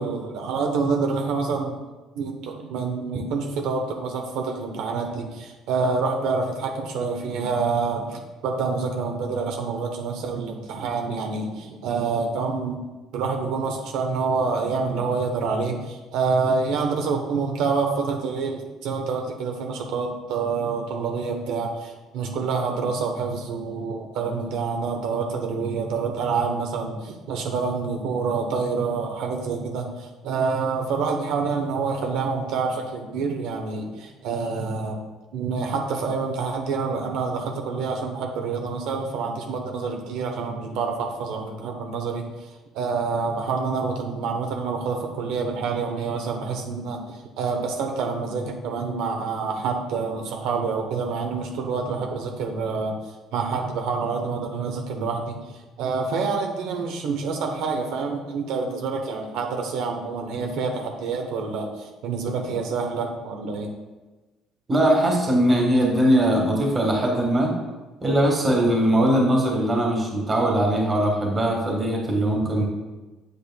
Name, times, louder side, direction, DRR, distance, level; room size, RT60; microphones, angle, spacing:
voice 1, 0.0-1.8 2.1-12.8 13.1-35.0 35.3-42.5 42.7-53.0 53.3-63.7, right 4 dB, 75° right, 2 dB, 0.9 m, -27 dB
voice 2, 64.7-67.5 68.0-72.7, right 1 dB, 20° right, -1 dB, 1.5 m, -20 dB
8.3 x 8.2 x 2.2 m, 1.2 s
cardioid pair, 170°, 0 cm